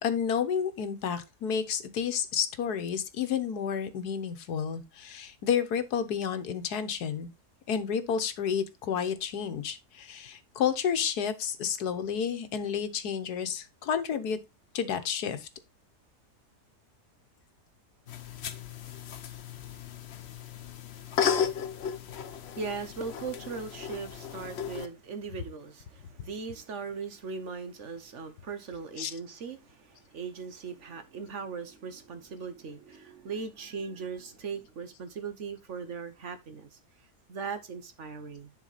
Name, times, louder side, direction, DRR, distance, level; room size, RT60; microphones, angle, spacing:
voice 1, 0.0-7.3 7.7-14.4 14.7-15.5 29.0-29.1, left 7 dB, 85° left, 1.6 m, -30 dB
sound 1, 18.1-24.9, left 7 dB, 50° left, 0.9 m, -34 dB
voice 2, 22.5-36.8 37.3-38.5, right 5 dB, 55° right, 1.2 m, -39 dB
10.5 x 4.6 x 4.0 m
omnidirectional pair, 1.6 m